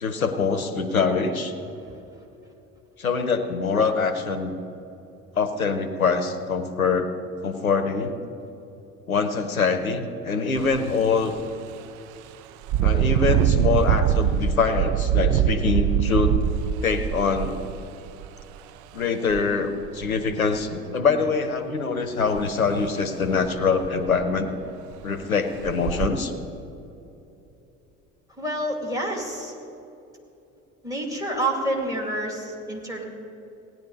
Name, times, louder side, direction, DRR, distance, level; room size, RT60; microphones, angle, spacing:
voice 1, 0.0-1.5 3.0-4.5 5.3-7.1 7.4-8.2 9.1-11.4 12.8-16.4 16.8-17.6 18.9-24.6 25.0-26.3, left 5 dB, 90° left, 9 dB, 0.7 m, -24 dB
Engine, 10.6-10.8 11.3-11.4 12.6-18.4 19.3-19.4 19.8-20.6 22.4-22.5 22.9-23.0 23.4-23.5 23.8-24.3 24.9-25.0 25.6-26.1, right 10 dB, 45° right, 0.5 m, -23 dB
voice 2, 28.4-29.5 30.8-33.0, right 1 dB, 10° right, 1 dB, 2.4 m, -28 dB
17.0 x 10.5 x 4.0 m, 2.9 s
figure-of-eight pair, 60°, 41 cm